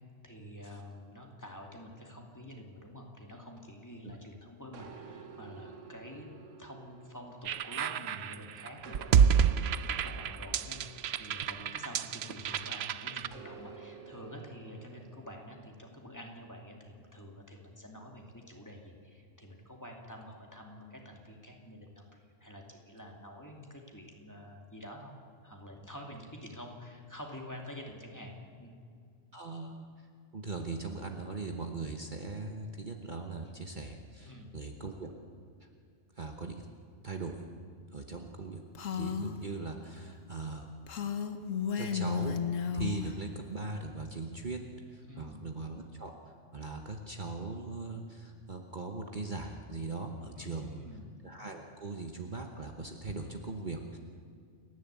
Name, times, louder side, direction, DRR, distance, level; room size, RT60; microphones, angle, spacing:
voice 1, 0.2-6.3 6.6-10.8 11.1-25.1 25.4-28.8 34.2-34.5 45.1-45.4 50.3-51.1, left 1 dB, 15° left, 0 dB, 2.6 m, -48 dB
sound 1, 4.7-8.3 8.8-12.6 13.3-16.0, right 6 dB, 80° right, 1.6 m, -52 dB
sound 2, 7.5-13.3, right 7 dB, 60° right, 0.8 m, -29 dB
voice 2, 29.3-30.1 30.3-35.1 36.1-36.7 37.0-37.4 37.9-38.6 38.9-40.7 41.8-42.4 42.7-46.1 46.5-50.7 51.2-54.0, right 3 dB, 40° right, 3 dB, 1.2 m, -40 dB
Female speech woman speaking, 38.7-39.4 40.9-43.1, left 8 dB, 85° left, 1.5 m, -33 dB
29.0 x 11.0 x 8.3 m, 2.2 s
omnidirectional pair, 1.3 m